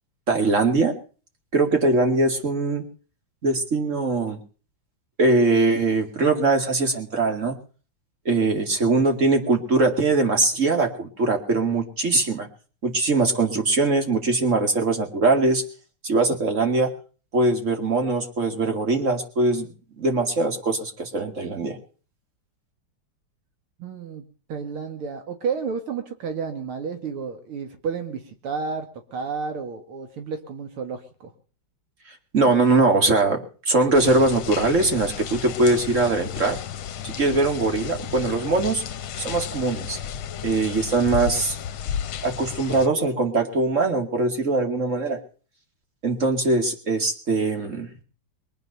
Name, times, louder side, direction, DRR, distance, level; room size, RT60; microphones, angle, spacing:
voice 1, 0.3-1.0 1.5-2.8 3.4-4.4 5.2-7.6 8.3-12.5 12.8-15.6 16.0-16.9 17.3-21.8 32.3-33.4 33.7-36.6 37.0-38.8 39.2-40.0 40.4-41.6 42.2-45.2 46.0-47.9, right 3 dB, 35° right, 5 dB, 2.6 m, -21 dB
voice 2, 23.8-24.2 24.5-28.9 29.1-31.3, right 5 dB, 80° right, 6 dB, 2.5 m, -31 dB
sound 1, 33.9-42.9, left 8 dB, 80° left, 1.8 m, -33 dB
23.0 x 9.1 x 6.8 m, 0.41 s
omnidirectional pair, 2.3 m